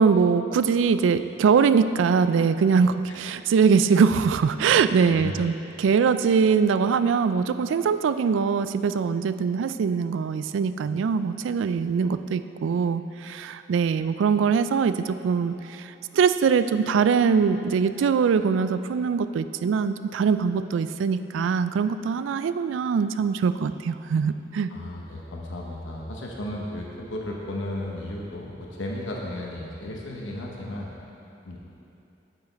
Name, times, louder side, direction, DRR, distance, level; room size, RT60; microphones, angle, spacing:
voice 1, 0.0-24.7, right 6 dB, 80° right, 12 dB, 0.3 m, -22 dB
voice 2, 24.7-30.9 31.4-31.6, left 1 dB, 90° left, -2 dB, 1.0 m, -34 dB
8.3 x 8.2 x 4.1 m, 2.8 s
head